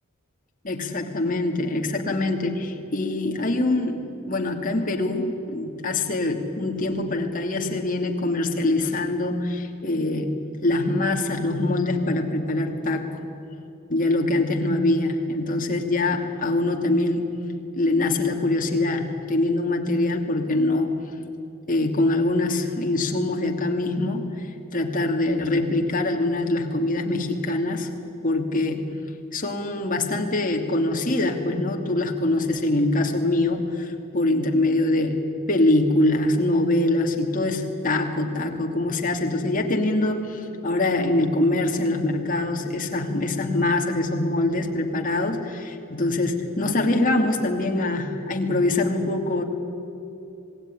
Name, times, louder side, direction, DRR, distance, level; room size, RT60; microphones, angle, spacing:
voice 1, 0.6-4.0 4.3-13.1 13.9-17.4 17.8-21.0 21.7-24.3 24.7-27.9 28.2-28.8 29.3-35.2 35.5-49.4, left 2 dB, 40° left, 3 dB, 2.7 m, -24 dB
26.5 x 19.5 x 10.0 m, 2.8 s
head